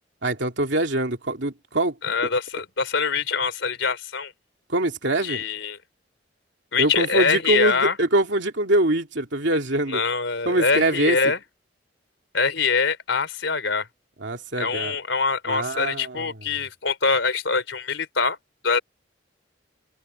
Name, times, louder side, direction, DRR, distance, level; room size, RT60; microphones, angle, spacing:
voice 1, 0.2-1.9 4.7-5.4 6.8-10.0 10.4-11.3 14.2-14.9 15.5-16.4, right 1 dB, 65° right, 2.9 m, -23 dB
voice 2, 2.0-4.3 5.2-5.8 6.7-8.0 9.9-11.4 12.3-13.9 14.6-18.4 18.6-18.8, left 5 dB, 75° left, 3.7 m, -24 dB
head